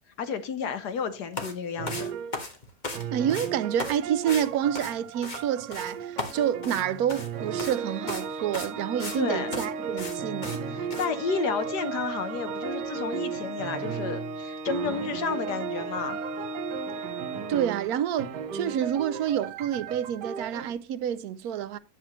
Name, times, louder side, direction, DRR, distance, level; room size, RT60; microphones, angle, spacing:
voice 1, 0.2-2.1 9.2-9.6 10.7-16.2, left 6 dB, 75° left, 1.6 m, -31 dB
sound 1, 1.3-1.5 1.9-3.0 3.3-3.5 3.8-4.0 4.3-4.5 4.7-5.4 5.7-5.9 6.2-7.3 7.6-7.8 8.1-8.3 8.5-9.2 9.5-9.7 10.0-10.2 10.4-10.6 10.9-11.1, left 2 dB, 30° left, 1.5 m, -35 dB
sound 2, 1.8-2.4 2.9-14.4 14.7-20.7, right 8 dB, 90° right, 1.4 m, -37 dB
voice 2, 3.1-10.8 17.5-21.8, right 10 dB, 70° right, 1.1 m, -28 dB
Organ, 7.4-18.1, right 3 dB, 50° right, 1.6 m, -36 dB
10.0 x 7.3 x 3.0 m
omnidirectional pair, 1.7 m